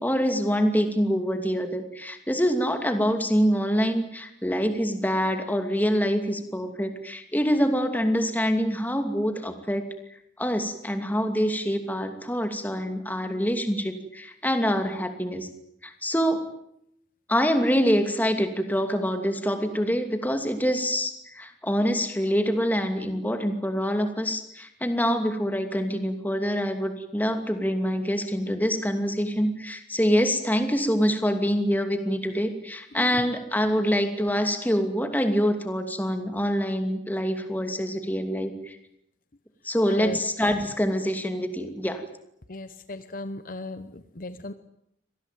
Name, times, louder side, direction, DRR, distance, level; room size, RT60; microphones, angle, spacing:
voice 1, 0.0-9.8 10.4-15.5 15.8-16.4 17.3-38.8 39.6-42.0, equal, 10° left, 7 dB, 2.7 m, -25 dB
voice 2, 42.5-43.9 44.2-44.5, left 2 dB, 50° left, 12 dB, 1.0 m, -35 dB
25.0 x 19.0 x 9.2 m, 0.76 s
head